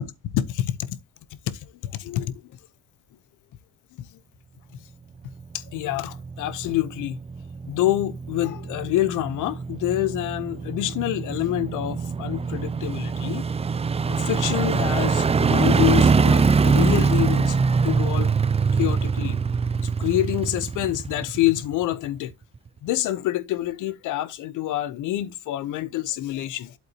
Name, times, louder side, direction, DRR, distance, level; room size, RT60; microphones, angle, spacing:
voice 1, 0.3-1.0 1.5-2.4 4.0-4.2 4.7-4.8 5.5-7.2 7.7-13.4 14.1-17.6 17.8-18.3 18.6-19.4 19.8-22.3 22.8-26.7, left 14 dB, 90° left, 0.9 m, -27 dB
sound 1, 5.4-21.9 22.3-22.4, right 5 dB, 20° right, 0.4 m, -24 dB
8.3 x 7.9 x 2.9 m
cardioid pair, 90°, 30 cm